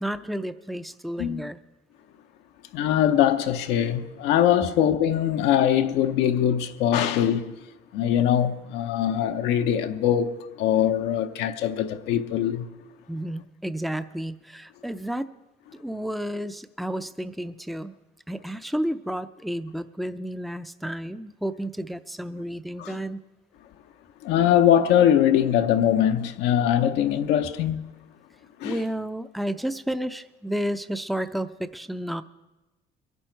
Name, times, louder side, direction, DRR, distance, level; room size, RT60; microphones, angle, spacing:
voice 1, 0.0-1.6 13.1-15.3 15.8-17.9 18.3-23.2 28.6-32.2, right 1 dB, ahead, 0.5 m, -31 dB
voice 2, 1.2-1.5 2.7-7.5 7.9-12.6 22.8-22.9 24.2-27.8 28.6-28.8, left 10 dB, 90° left, 0.8 m, -22 dB
22.5 x 11.0 x 4.5 m
cardioid pair, 110°, 17 cm